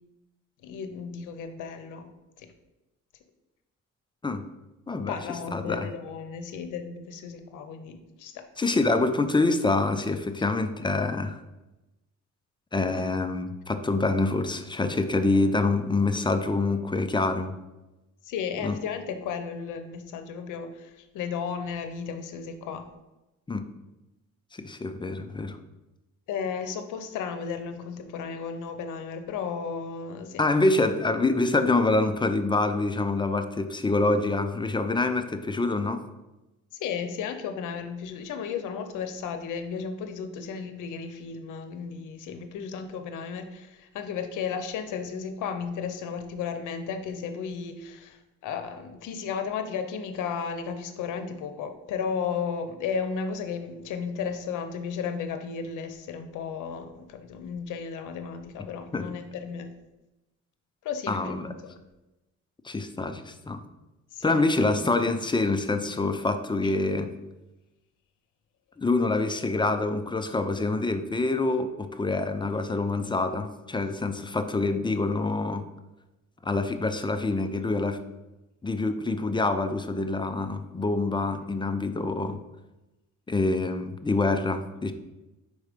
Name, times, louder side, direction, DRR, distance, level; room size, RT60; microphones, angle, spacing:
voice 1, 0.6-2.1 2.4-2.5 5.1-8.4 15.3-15.4 18.2-22.9 26.3-30.4 36.7-59.7 60.8-61.8 64.1-64.4 66.6-66.7, left 6 dB, 85° left, 8 dB, 0.7 m, -34 dB
voice 2, 5.5-5.9 8.6-11.4 12.7-17.5 18.6-18.8 23.5-23.7 24.5-25.6 30.4-36.1 58.9-59.1 61.1-61.5 62.6-63.6 64.2-67.1 68.8-75.7 76.4-78.0 78.6-82.4 83.3-84.9, left 3 dB, 15° left, 8 dB, 0.5 m, -26 dB
4.8 x 4.2 x 5.1 m, 1.0 s
cardioid pair, 90°, 30 cm